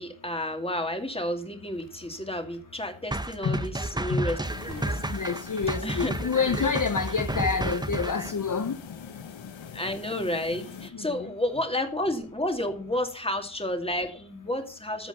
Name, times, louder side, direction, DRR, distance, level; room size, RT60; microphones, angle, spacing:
voice 1, 0.0-4.4 4.7-5.0 5.8-6.2 9.7-15.1, left 1 dB, 10° left, 2.4 m, -31 dB
Crackle, 1.7-2.9 3.4-4.0 4.7-5.1 5.5-5.9 6.2-8.2 8.4-8.6, right 2 dB, 55° right, 3.8 m, -45 dB
sound 1, 3.1-8.3, right 2 dB, 10° right, 0.8 m, -32 dB
sound 2, 4.4-10.9, left 7 dB, 75° left, 1.0 m, -43 dB
voice 2, 5.1-8.7 10.9-11.3, left 5 dB, 45° left, 0.8 m, -28 dB
14.5 x 5.1 x 5.5 m
cardioid pair, 50°, 46 cm